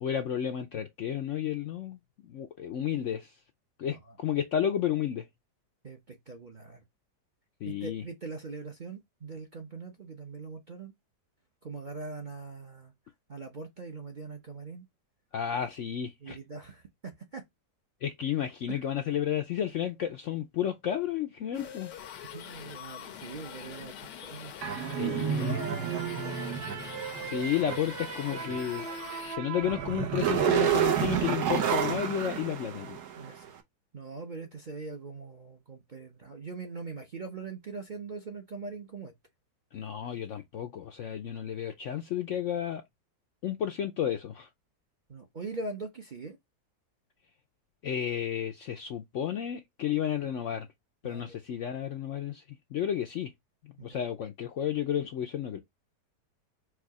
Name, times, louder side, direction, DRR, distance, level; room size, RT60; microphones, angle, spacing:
voice 1, 0.0-3.4 3.8-5.3 7.6-8.0 15.3-16.4 18.0-21.9 25.0-25.6 27.2-28.9 29.3-33.0 39.7-42.8 43.4-44.5 47.8-50.7 51.0-53.3 53.6-55.6, left 10 dB, 70° left, 0.7 m, -32 dB
voice 2, 5.8-6.8 7.7-10.9 11.6-12.9 13.3-14.9 16.2-17.4 18.7-18.8 22.2-26.6 33.2-33.5 33.9-39.1 45.1-46.4 51.0-51.4 53.8-54.0, right 3 dB, 40° right, 0.7 m, -42 dB
sound 1, 21.5-29.4, left 9 dB, 90° left, 1.4 m, -44 dB
sound 2, 24.6-33.3, right 9 dB, 70° right, 1.4 m, -30 dB
4.7 x 2.4 x 4.6 m
omnidirectional pair, 1.8 m